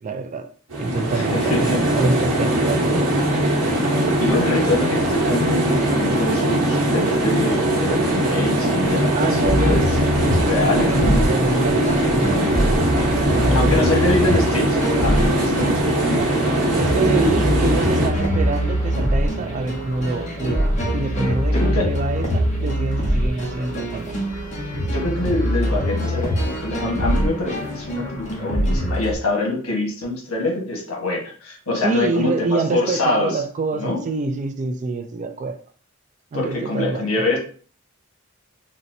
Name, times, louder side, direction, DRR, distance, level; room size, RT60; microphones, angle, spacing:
voice 1, 0.0-0.5 0.8-3.1 9.1-12.7 13.0-14.0 16.8-24.2 31.8-35.6 36.3-37.3, right 3 dB, 35° right, 0.3 m, -26 dB
sound 1, 0.7-18.1, right 1 dB, 80° right, 1.1 m, -20 dB
voice 2, 1.1-1.8 4.0-9.8 10.5-11.2 13.2-16.4 16.9-17.5 21.2-21.9 24.8-32.3 32.7-33.4 33.7-34.0 36.3-37.4, left 2 dB, 80° left, 1.2 m, -25 dB
sound 2, 9.4-29.1, equal, 35° left, 0.8 m, -24 dB
4.0 x 2.1 x 2.6 m
head